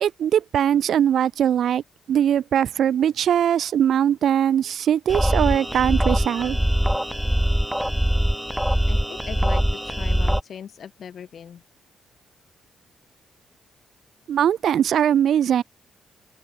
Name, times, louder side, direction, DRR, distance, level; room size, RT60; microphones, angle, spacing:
voice 1, 0.0-1.8 2.1-6.6 14.3-15.6, right 9 dB, 70° right, 1.0 m, -21 dB
sound 1, 5.1-10.4, equal, 5° right, 1.2 m, -22 dB
voice 2, 8.9-11.6, left 8 dB, 60° left, 1.2 m, -39 dB
cardioid pair, 80°, 0 cm